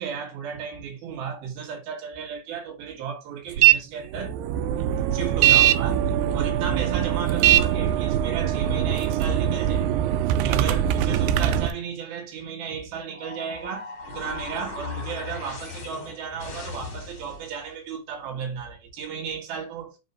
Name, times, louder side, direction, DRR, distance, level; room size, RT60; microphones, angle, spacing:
voice 1, 0.0-4.4 5.1-6.0 6.3-9.9 10.4-20.0, right 7 dB, 65° right, 3.2 m, -34 dB
sound 1, 3.6-3.8 4.1-11.7, right 11 dB, 85° right, 2.3 m, -21 dB
sound 2, 13.1-17.7, left 4 dB, 70° left, 1.2 m, -38 dB
6.4 x 3.0 x 5.3 m
omnidirectional pair, 5.1 m